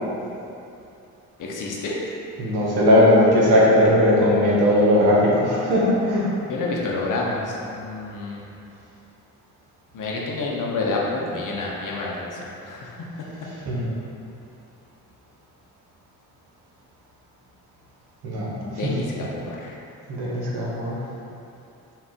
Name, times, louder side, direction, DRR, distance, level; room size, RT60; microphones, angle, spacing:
voice 1, 1.4-2.0 6.5-8.4 9.9-12.4 12.7-12.9 18.6-19.7, left 3 dB, 45° left, -3 dB, 0.9 m, -28 dB
voice 2, 2.4-6.3 13.7-13.9 18.2-18.9 20.1-21.0, left 1 dB, 55° right, -5 dB, 1.1 m, -18 dB
5.7 x 2.4 x 3.6 m, 2.7 s
figure-of-eight pair, 40°, 45 cm